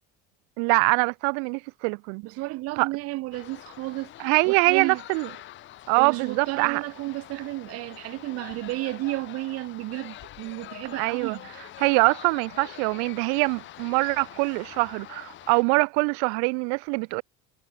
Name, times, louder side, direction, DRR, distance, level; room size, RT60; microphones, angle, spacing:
voice 1, 0.6-2.2 2.8-2.9 4.2-5.3 5.9-6.8 11.0-11.4 11.8-17.2, right 40 dB or more, 85° right, 2.9 m, -23 dB
voice 2, 2.2-4.1 4.4-5.0 6.0-11.5, right 20 dB, 50° right, 1.8 m, -32 dB
sound 1, 3.3-15.6, left 14 dB, 40° left, 3.3 m, -45 dB
cardioid pair, 180°, 30 cm